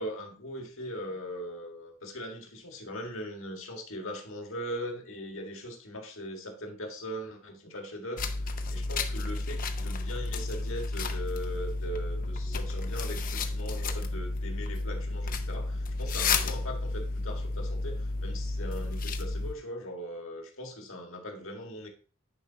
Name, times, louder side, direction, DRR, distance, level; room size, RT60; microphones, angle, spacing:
voice 1, 0.0-21.9, equal, 70° left, 2 dB, 1.8 m, -40 dB
sound 1, 8.2-19.5, left 3 dB, 40° left, 0.6 m, -32 dB
10.0 x 5.1 x 2.8 m, 0.40 s
head